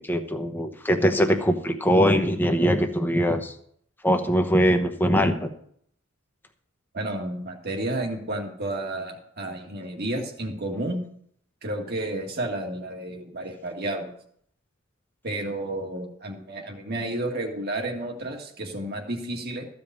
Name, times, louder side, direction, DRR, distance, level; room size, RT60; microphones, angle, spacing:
voice 1, 0.0-3.5 4.0-5.5, equal, 10° left, 6 dB, 1.0 m, -22 dB
voice 2, 6.9-11.0 11.6-14.1 15.2-19.6, right 1 dB, 50° right, 2 dB, 2.0 m, -31 dB
14.5 x 5.3 x 8.1 m, 0.65 s
head